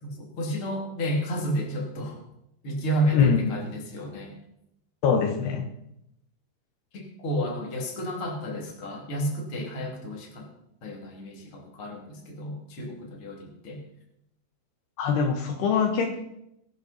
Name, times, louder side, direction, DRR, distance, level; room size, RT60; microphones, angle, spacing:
voice 1, 0.0-2.2 2.6-4.3 6.9-10.5 10.8-13.8, equal, 35° left, 1 dB, 2.9 m, -31 dB
voice 2, 3.1-3.5 5.0-5.6 15.0-16.2, left 6 dB, 75° left, 4 dB, 3.1 m, -23 dB
21.0 x 11.0 x 4.1 m, 0.81 s
omnidirectional pair, 5.1 m